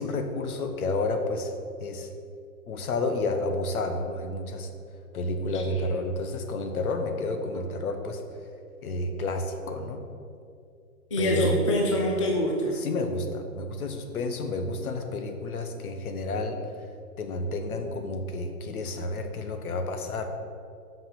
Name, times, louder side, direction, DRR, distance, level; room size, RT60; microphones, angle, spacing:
voice 1, 0.0-1.5 1.8-2.1 2.7-4.7 5.1-8.2 8.8-10.0 11.2-11.5 12.8-16.6 17.2-20.3, left 2 dB, 65° left, 6 dB, 1.1 m, -30 dB
voice 2, 5.4-5.8 11.1-12.8, left 1 dB, 20° left, -1 dB, 0.4 m, -26 dB
5.8 x 5.6 x 6.9 m, 2.4 s
hypercardioid pair, 150°, 47 cm